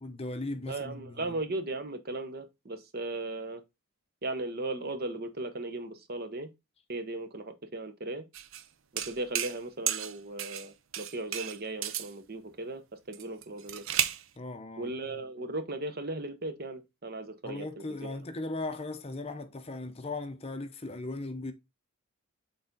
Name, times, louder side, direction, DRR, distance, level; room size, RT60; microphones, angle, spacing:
voice 1, 0.0-1.4 14.4-14.9 17.4-21.5, left 2 dB, 25° left, 0.6 m, -38 dB
voice 2, 0.7-3.6 4.2-6.5 6.9-8.2 8.9-13.8 14.8-18.2, right 2 dB, 45° right, 0.9 m, -37 dB
sound 1, 8.3-8.6 9.0-9.6 9.9-10.7 10.9-12.1 13.1-14.2, right 11 dB, 65° right, 0.6 m, -33 dB
6.6 x 4.0 x 3.8 m
head